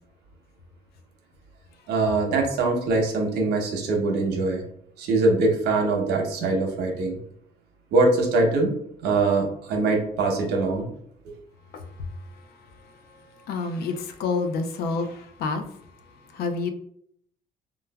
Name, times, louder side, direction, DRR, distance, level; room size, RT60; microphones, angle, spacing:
voice 1, 1.9-4.6 5.0-7.2 7.9-8.7 9.0-10.8, right 3 dB, 80° right, 2 dB, 0.8 m, -23 dB
voice 2, 13.5-15.6 16.3-16.7, left 4 dB, 70° left, 7 dB, 0.4 m, -28 dB
3.2 x 2.2 x 2.2 m, 0.68 s
cardioid pair, 110°, 17 cm